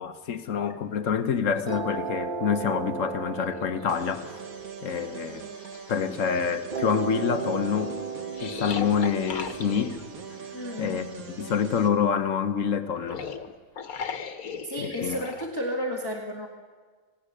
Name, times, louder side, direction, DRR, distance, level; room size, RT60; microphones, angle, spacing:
voice 1, 0.0-4.4 4.8-5.4 5.9-8.0 8.4-10.0 10.8-11.1 11.4-13.3 14.8-15.2, left 7 dB, 65° left, 1.3 m, -27 dB
sound 1, 0.5-0.8 2.5-2.6 3.1-4.1 4.7-4.8 5.4-6.6 8.3-10.1 12.9-15.5, left 6 dB, 90° left, 1.6 m, -37 dB
sound 2, 1.7-6.0 6.7-11.7, right 5 dB, 35° right, 1.6 m, -36 dB
sound 3, 3.9-11.9, right 6 dB, 80° right, 2.1 m, -42 dB
voice 2, 10.5-11.0 12.9-13.2 14.6-16.5, equal, 15° left, 1.8 m, -32 dB
26.5 x 17.5 x 6.6 m
omnidirectional pair, 1.5 m